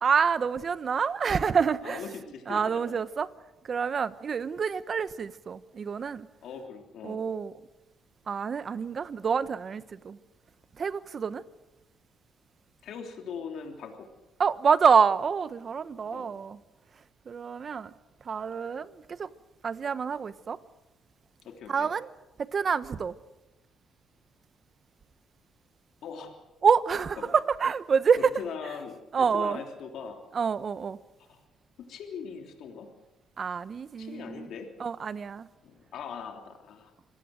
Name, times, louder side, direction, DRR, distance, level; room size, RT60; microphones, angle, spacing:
voice 1, 0.0-2.0 2.5-3.3 3.6-6.3 7.0-7.5 8.3-10.2 10.8-11.4 14.4-16.6 17.3-17.9 18.2-19.3 19.6-20.6 21.7-22.1 22.4-23.1 26.6-28.3 29.1-29.6 30.3-31.0 33.4-34.5 34.8-35.5, right 6 dB, 45° right, 1.1 m, -27 dB
voice 2, 1.8-3.0 6.4-7.2 12.8-14.1 16.1-16.3 21.4-21.9 26.0-26.3 27.2-27.3 28.4-30.2 31.3-31.4 31.8-32.9 34.0-34.7 35.6-36.9, left 6 dB, 75° left, 3.3 m, -40 dB
26.5 x 17.0 x 8.0 m
cardioid pair, 90°, 0 cm